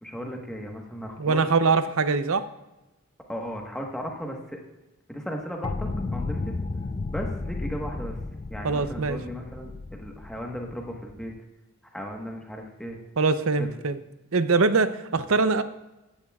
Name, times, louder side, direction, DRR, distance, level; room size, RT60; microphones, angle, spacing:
voice 1, 0.0-1.4 3.3-4.4 5.1-6.6 7.1-8.2 8.5-11.3 11.9-13.0 13.6-13.7, equal, 5° left, 0 dB, 1.3 m, -36 dB
voice 2, 1.2-2.4 8.6-9.2 13.2-14.0 14.3-15.6, right 4 dB, 70° right, 12 dB, 0.6 m, -23 dB
sound 1, 5.6-11.3, left 3 dB, 25° left, 0.3 m, -33 dB
15.5 x 10.5 x 2.4 m, 1.0 s
head